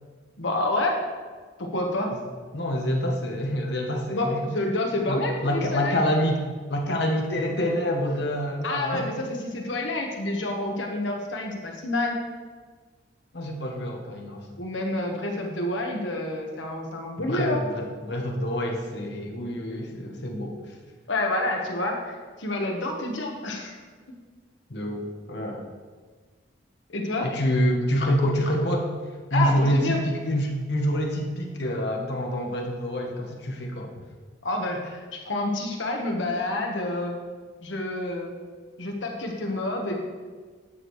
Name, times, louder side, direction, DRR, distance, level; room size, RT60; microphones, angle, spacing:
voice 1, 0.4-1.0 1.6-2.1 4.1-6.0 8.6-12.2 14.6-17.6 21.1-23.8 26.9-27.3 29.3-30.0 34.4-37.1 37.6-38.4 38.8-40.0, left 2 dB, 85° left, 1 dB, 1.2 m, -28 dB
voice 2, 2.5-4.5 5.1-9.1 13.3-14.5 17.2-20.7 24.7-25.6 27.2-28.9 29.3-34.0, equal, 60° left, 1 dB, 1.1 m, -27 dB
9.7 x 6.4 x 3.1 m, 1.5 s
head